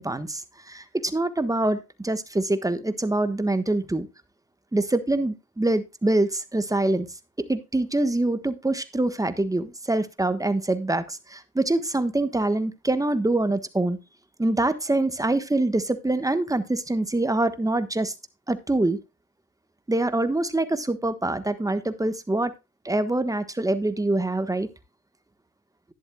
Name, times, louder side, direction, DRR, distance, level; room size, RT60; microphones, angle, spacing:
voice 1, 0.0-4.1 4.7-7.1 7.5-14.0 14.4-18.1 18.5-19.0 19.9-22.5 22.8-24.7, right 2 dB, 10° right, 1.3 m, -25 dB
11.5 x 10.5 x 2.3 m
cardioid pair, 90°, 30 cm